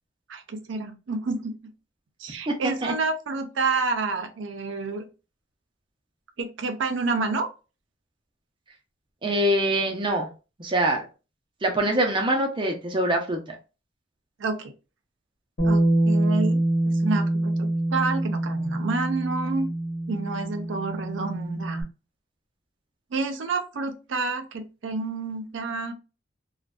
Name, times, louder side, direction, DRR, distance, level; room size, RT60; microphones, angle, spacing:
voice 1, 0.3-1.5 2.2-5.1 6.4-7.5 14.4-14.7 15.6-16.6 17.0-19.7 20.1-21.8 23.1-25.9, right 3 dB, 80° right, 6 dB, 0.5 m, -29 dB
voice 2, 2.5-2.9 9.2-10.3 10.6-11.1 11.6-13.6, right 1 dB, 25° right, 2 dB, 0.5 m, -24 dB
Bass guitar, 15.6-21.8, right 1 dB, 50° left, 1.0 m, -25 dB
2.5 x 2.1 x 2.3 m, 0.31 s
head